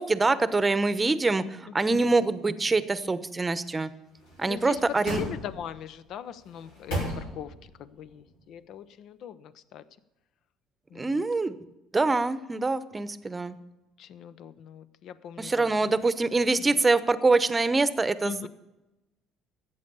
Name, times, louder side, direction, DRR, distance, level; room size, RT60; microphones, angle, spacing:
voice 1, 0.0-3.9 4.4-5.2 11.0-11.5 11.9-13.6 15.4-18.5, right 3 dB, 20° right, 14 dB, 0.9 m, -25 dB
sound 1, 4.2-5.9 6.4-7.7 8.1-8.2, equal, 85° left, 4.0 m, -36 dB
voice 2, 4.5-4.8 5.1-9.8 10.9-11.2 14.0-15.8 16.6-16.8 18.2-18.5, left 9 dB, 60° left, 16 dB, 0.6 m, -41 dB
13.5 x 8.3 x 6.8 m, 1.0 s
hypercardioid pair, 60°, 0 cm